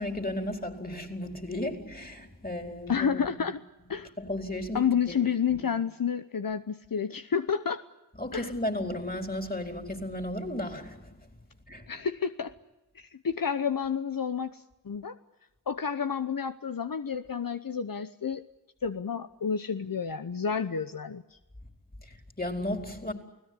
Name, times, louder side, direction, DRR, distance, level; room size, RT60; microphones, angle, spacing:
voice 1, 0.0-3.2 4.2-5.2 5.5-5.7 8.2-11.3 11.7-11.9 22.0-23.1, left 1 dB, 25° left, 4.6 m, -34 dB
voice 2, 2.9-3.6 3.9-4.1 4.7-7.8 8.3-8.5 11.9-12.5 12.9-15.2 15.7-18.4 18.8-21.4, left 7 dB, 75° left, 1.0 m, -30 dB
29.5 x 18.0 x 9.8 m
wide cardioid pair, 50°, 34 cm